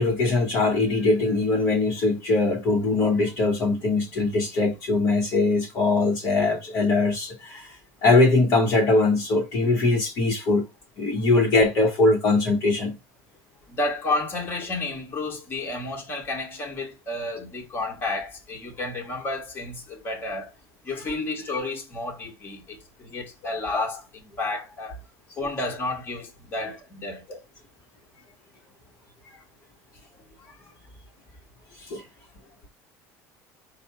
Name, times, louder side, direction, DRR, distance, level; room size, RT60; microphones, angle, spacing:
voice 1, 0.0-10.7 11.0-13.0 23.7-23.8 31.8-32.0, left 3 dB, 45° left, 0.9 m, -22 dB
voice 2, 13.7-20.5 20.8-25.0 25.4-27.2, left 2 dB, 25° left, 1.3 m, -31 dB
4.2 x 2.1 x 4.4 m
cardioid pair, 145°, 8 cm